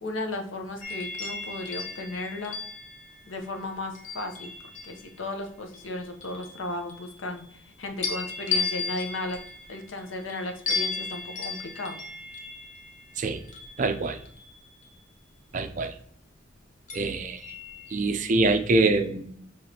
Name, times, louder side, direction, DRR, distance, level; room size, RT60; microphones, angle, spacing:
voice 1, 0.0-2.6 3.3-4.5 4.8-9.4 9.7-12.0, left 2 dB, 85° left, 4 dB, 0.8 m, -35 dB
sound 1, 0.8-5.2 5.7-7.6 8.0-15.0 16.9-18.3 18.7-19.0, left 5 dB, 40° left, 0.7 m, -36 dB
voice 2, 13.8-14.2 15.5-15.9 16.9-17.4 17.9-19.2, right 2 dB, 40° right, 7 dB, 0.4 m, -24 dB
5.9 x 3.1 x 2.8 m, 0.65 s
head